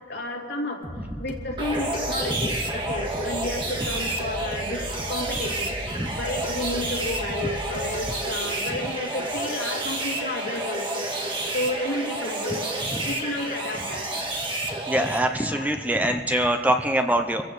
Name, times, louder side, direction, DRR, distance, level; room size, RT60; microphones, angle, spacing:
voice 1, 0.1-0.8 1.2-11.1 11.5-12.6 13.1-14.1 15.3-16.6, left 1 dB, 75° left, -1 dB, 2.7 m, -32 dB
sound 1, 0.8-8.2, equal, 45° right, 2.2 m, -37 dB
sound 2, 1.6-15.2, right 2 dB, 30° right, 1.8 m, -30 dB
voice 2, 14.9-17.4, right 1 dB, 10° right, 5 dB, 0.6 m, -23 dB
25.0 x 16.0 x 3.2 m, 2.3 s
head